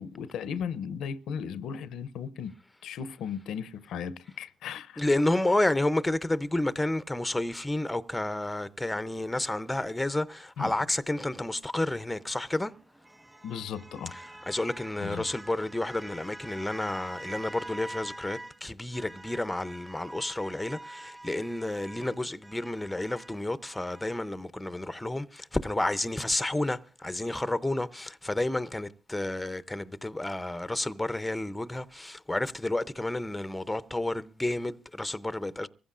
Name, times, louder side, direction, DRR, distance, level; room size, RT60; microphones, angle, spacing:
voice 1, 0.0-2.5 2.8-5.0 10.6-10.7 13.4-14.1 15.0-15.3, left 7 dB, 80° left, 0.6 m, -36 dB
voice 2, 5.0-12.7 14.1-35.7, left 1 dB, 10° left, 0.6 m, -30 dB
sound 1, 12.0-18.6 18.9-24.3, right 1 dB, 15° right, 1.5 m, -46 dB
25.0 x 15.5 x 2.5 m
cardioid pair, 90°, 0 cm